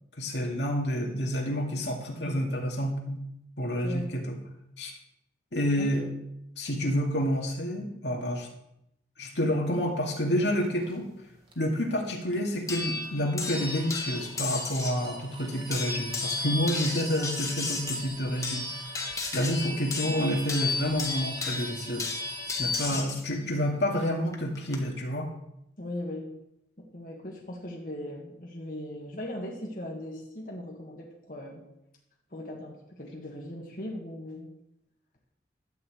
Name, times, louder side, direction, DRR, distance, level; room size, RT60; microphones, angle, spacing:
voice 1, 0.2-3.2 3.6-4.4 4.8-4.9 5.5-6.0 6.6-8.5 9.2-11.1 11.6-18.7 19.3-22.1 22.6-25.3, equal, 75° left, 0 dB, 2.2 m, -29 dB
voice 2, 3.8-4.1 5.8-6.1 22.9-23.1 25.8-26.4 26.8-31.6 32.3-34.5, left 1 dB, 45° left, -1 dB, 1.7 m, -39 dB
sound 1, 10.5-23.0, right 4 dB, 30° right, 1.8 m, -45 dB
sound 2, 12.7-15.1 15.7-23.2 24.3-24.8, left 3 dB, 15° left, 1.5 m, -33 dB
12.0 x 5.6 x 8.1 m, 0.82 s
head